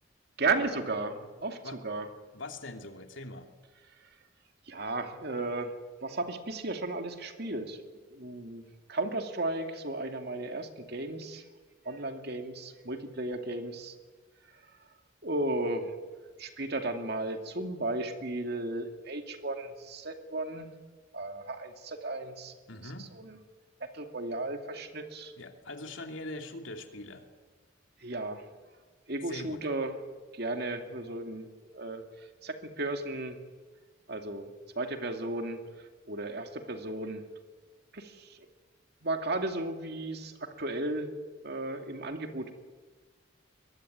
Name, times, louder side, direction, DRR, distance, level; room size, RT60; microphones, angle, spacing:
voice 1, 0.4-2.1 4.0-4.1 4.7-7.8 8.1-11.5 11.8-13.9 14.5-14.6 15.2-15.9 16.4-20.7 21.1-22.5 22.8-23.4 23.8-25.3 28.0-28.4 29.1-29.9 30.3-33.4 34.1-35.6 36.1-37.2 37.9-38.5 39.0-41.1 41.4-42.5, right 2 dB, 55° right, 6 dB, 2.5 m, -35 dB
voice 2, 2.3-3.5 22.7-23.1 25.4-27.3 29.2-29.6, left 2 dB, 70° left, 5 dB, 2.9 m, -42 dB
24.0 x 22.0 x 9.4 m, 1.4 s
head